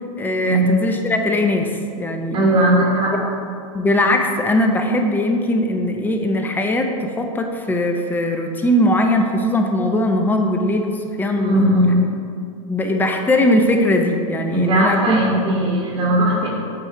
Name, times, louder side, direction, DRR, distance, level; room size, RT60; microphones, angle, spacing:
voice 1, 0.2-2.4 3.7-11.8 12.7-15.2, left 1 dB, 10° left, 4 dB, 0.5 m, -20 dB
voice 2, 2.3-3.2 11.3-12.0 14.5-16.5, right 1 dB, 30° right, -3 dB, 1.0 m, -18 dB
8.1 x 3.2 x 4.8 m, 2.4 s
hypercardioid pair, 125°, 18 cm